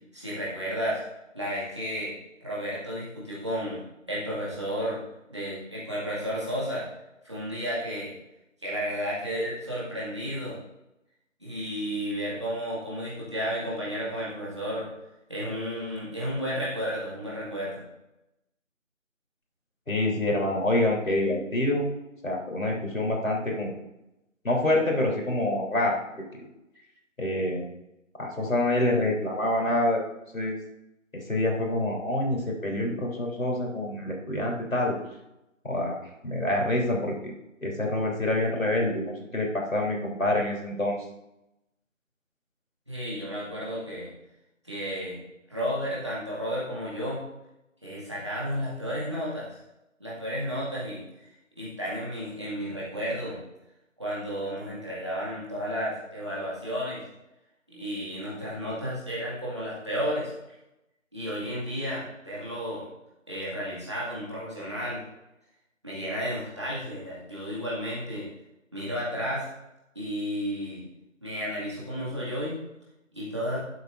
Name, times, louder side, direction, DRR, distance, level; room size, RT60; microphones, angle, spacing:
voice 1, 0.1-1.0 1.3-2.1 2.4-3.8 4.1-5.0 5.3-6.9 7.2-8.2 8.6-10.6 11.4-14.9 15.3-17.8 42.9-44.1 44.6-45.2 45.5-47.2 47.8-49.6 50.0-51.0 51.6-53.4 54.0-57.0 57.7-60.3 61.1-62.9 63.3-65.0 65.8-68.3 68.7-69.5 69.9-70.8 71.2-72.6 73.1-73.6, equal, 20° right, -8 dB, 2.1 m, -32 dB
voice 2, 19.9-21.9 22.2-23.7 24.4-26.0 26.3-26.4 27.2-27.7 28.2-30.0 30.3-30.6 31.1-35.0 35.6-36.0 36.2-37.3 37.6-41.0, left 1 dB, 85° left, -1 dB, 3.5 m, -26 dB
13.0 x 8.0 x 2.6 m, 0.90 s
figure-of-eight pair, 180°, 39 cm